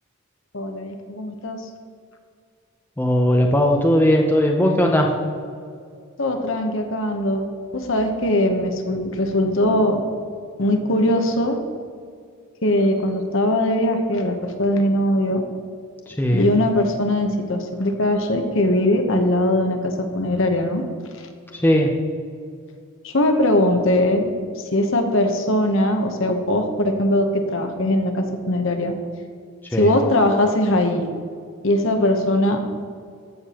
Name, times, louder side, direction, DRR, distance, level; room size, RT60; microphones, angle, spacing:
voice 1, 0.5-1.6 6.2-7.5 7.7-10.0 10.6-11.6 12.6-15.4 16.3-20.8 23.0-24.3 24.7-28.9 29.8-31.1 31.6-32.6, left 1 dB, 55° left, 4 dB, 0.9 m, -20 dB
voice 2, 3.0-5.1 16.1-16.5 21.5-21.9 29.7-29.9, equal, 10° left, 1 dB, 0.5 m, -18 dB
15.0 x 6.7 x 2.9 m, 2.2 s
head